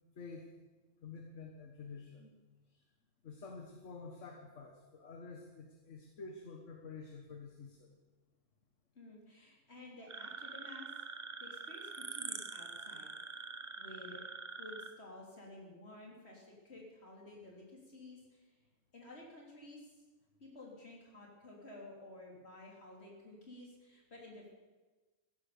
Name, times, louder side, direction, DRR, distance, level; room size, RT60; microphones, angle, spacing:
voice 1, 0.2-0.5 1.0-2.3 2.7-2.8 3.2-7.9, left 4 dB, 70° left, 2 dB, 1.6 m, -49 dB
voice 2, 9.0-10.9 11.4-13.1 13.8-14.2 14.6-18.4 18.9-19.9 20.4-24.5, left 2 dB, 55° left, -2 dB, 3.7 m, -53 dB
sound 1, 10.1-14.9, right 4 dB, 40° right, 1.0 m, -45 dB
15.0 x 10.0 x 6.9 m, 1.3 s
omnidirectional pair, 1.3 m